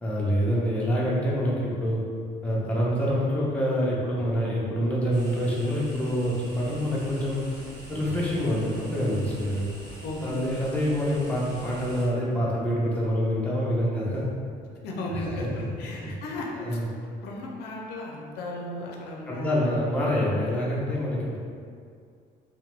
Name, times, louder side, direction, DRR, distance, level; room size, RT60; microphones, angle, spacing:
voice 1, 0.0-2.0 2.4-7.4 7.9-9.7 10.2-14.3 15.2-16.1 16.6-16.9 19.3-21.4, equal, 10° left, -6 dB, 0.6 m, -26 dB
sound 1, 5.1-12.1, equal, 20° right, 0.9 m, -45 dB
voice 2, 10.0-10.5 14.8-16.8 17.2-19.7, left 2 dB, 80° left, -2 dB, 0.5 m, -35 dB
2.7 x 2.1 x 3.2 m, 2.2 s
cardioid pair, 110°, 17 cm